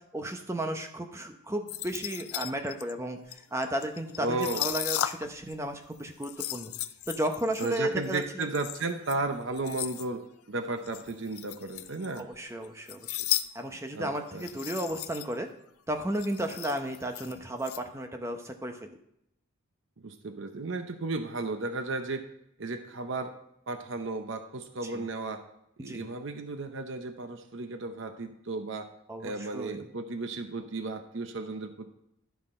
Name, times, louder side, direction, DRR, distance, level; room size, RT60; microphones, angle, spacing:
voice 1, 0.1-6.7 7.1-8.2 12.2-13.2 13.5-15.5 15.9-19.0 24.8-25.1 25.8-26.1 29.1-29.8, right 1 dB, 15° right, 5 dB, 0.8 m, -34 dB
sound 1, 1.7-5.6 5.8-10.1 10.8-12.4 12.6-13.5 13.7-13.9 14.3-15.4 15.7-15.8 15.9-17.8, left 12 dB, 80° left, 0.5 m, -36 dB
voice 2, 4.2-4.6 7.6-12.3 13.9-14.5 20.0-22.2 22.6-23.3 23.7-25.4 25.8-28.9 29.2-31.9, right 2 dB, 60° right, 7 dB, 0.7 m, -34 dB
12.5 x 5.8 x 4.3 m, 0.77 s
head